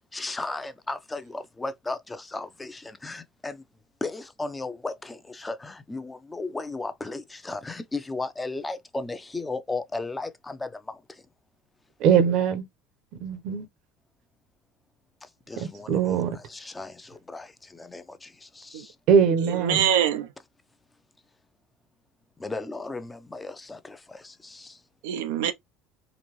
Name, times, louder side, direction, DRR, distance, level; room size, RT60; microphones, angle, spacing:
voice 1, 0.1-3.6 4.0-11.3 15.2-19.0 22.4-24.8, left 3 dB, 15° left, 0.7 m, -35 dB
voice 2, 12.0-12.7 13.2-13.7 15.6-16.4 19.1-19.9, right 7 dB, 65° right, 0.9 m, -22 dB
voice 3, 19.3-20.3 25.0-25.5, right 10 dB, 80° right, 0.5 m, -25 dB
4.0 x 2.6 x 3.1 m
hypercardioid pair, 75°, 0 cm